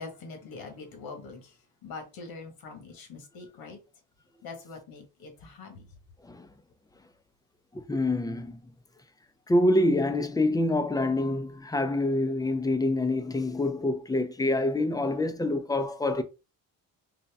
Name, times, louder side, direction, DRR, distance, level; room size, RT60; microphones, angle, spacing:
voice 1, 0.0-3.8 4.4-5.9, left 4 dB, 70° left, 1.5 m, -43 dB
voice 2, 7.7-8.6 9.5-16.2, left 1 dB, 10° left, 0.4 m, -26 dB
4.1 x 2.2 x 3.4 m
cardioid pair, 110°, 37 cm